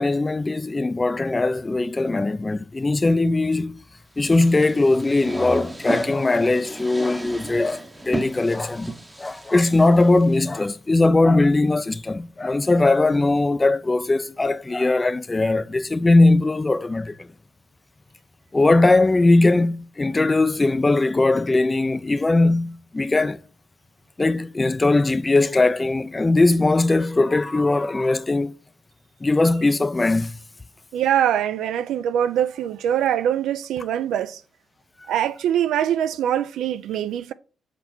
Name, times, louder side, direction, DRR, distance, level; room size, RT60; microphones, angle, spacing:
voice 1, 0.0-3.8 4.2-8.9 9.2-17.3 18.5-23.4 24.2-28.6 29.2-30.4, left 2 dB, 20° left, 0.4 m, -20 dB
sound 1, 4.2-10.4, right 1 dB, 15° right, 0.7 m, -33 dB
voice 2, 30.9-34.4 35.1-37.3, right 10 dB, 90° right, 0.4 m, -23 dB
6.7 x 4.1 x 4.4 m
cardioid pair, 100°, 0 cm